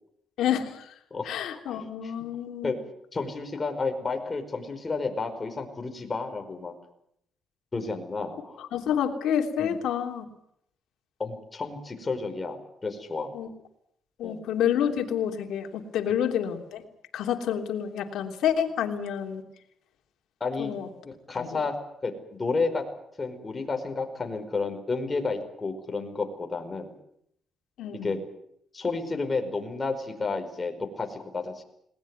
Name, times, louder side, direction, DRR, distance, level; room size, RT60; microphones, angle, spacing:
voice 1, 0.4-0.9 1.2-2.7 8.7-10.2 13.3-13.5 14.2-16.8 17.1-19.4 20.6-20.9 21.3-21.6 27.8-28.1, left 9 dB, 80° left, 4 dB, 3.2 m, -28 dB
voice 2, 1.7-2.1 2.6-2.8 3.1-6.7 7.7-8.6 9.6-9.8 11.2-13.3 14.2-14.5 20.4-20.7 21.0-21.8 22.0-22.9 23.2-26.9 27.9-28.2 28.7-31.6, left 4 dB, 30° left, 5 dB, 5.0 m, -31 dB
20.5 x 19.5 x 9.7 m, 0.74 s
cardioid pair, 90°, 0 cm